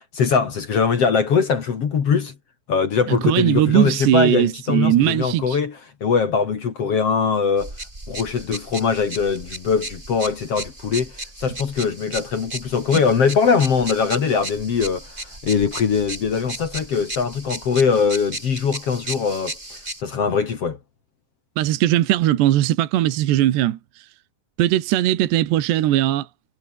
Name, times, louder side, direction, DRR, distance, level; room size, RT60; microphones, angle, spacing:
voice 1, 0.1-2.3 2.7-7.7 8.1-11.1 11.4-15.0 15.4-19.5 20.0-20.8, left 6 dB, 45° left, 2.1 m, -21 dB
voice 2, 3.1-5.6 21.6-24.1 24.6-26.3, right 13 dB, 70° right, 3.5 m, -19 dB
sound 1, 7.6-20.0, right 1 dB, 10° right, 4.8 m, -35 dB
omnidirectional pair, 5.3 m